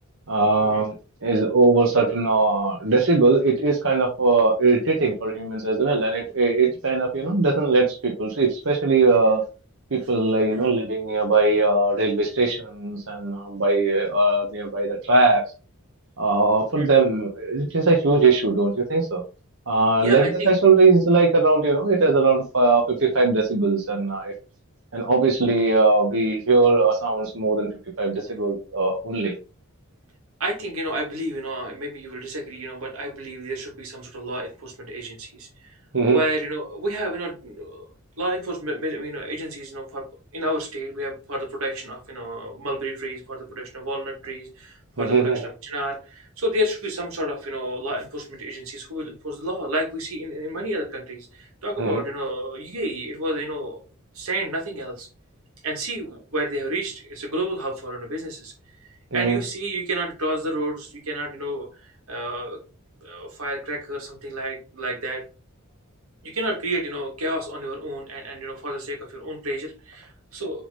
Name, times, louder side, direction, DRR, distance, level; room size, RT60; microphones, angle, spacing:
voice 1, 0.3-0.9 1.2-9.4 9.9-15.4 16.2-19.2 19.7-24.3 24.9-27.7 28.0-29.3 35.9-36.2 45.0-45.5 51.8-52.0 59.1-59.4, right 3 dB, 70° right, -1 dB, 1.3 m, -20 dB
voice 2, 20.0-20.5 30.4-35.8 36.1-37.9 38.2-40.0 40.3-53.8 54.1-55.1 55.6-58.5 59.1-62.6 63.0-65.2 66.2-70.7, right 1 dB, 85° right, 1 dB, 2.6 m, -30 dB
6.8 x 3.7 x 4.1 m, 0.32 s
head